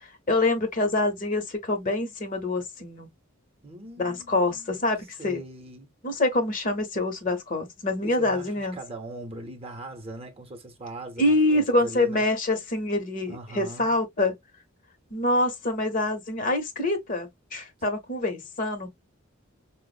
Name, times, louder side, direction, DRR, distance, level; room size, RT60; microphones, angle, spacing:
voice 1, 0.0-3.1 4.0-5.4 6.0-8.8 11.2-14.3 15.1-18.9, left 2 dB, 40° left, 0.8 m, -26 dB
voice 2, 3.6-4.9 5.2-5.9 8.0-12.2 13.3-13.9, right 1 dB, 30° right, 0.7 m, -41 dB
4.6 x 2.0 x 2.3 m
head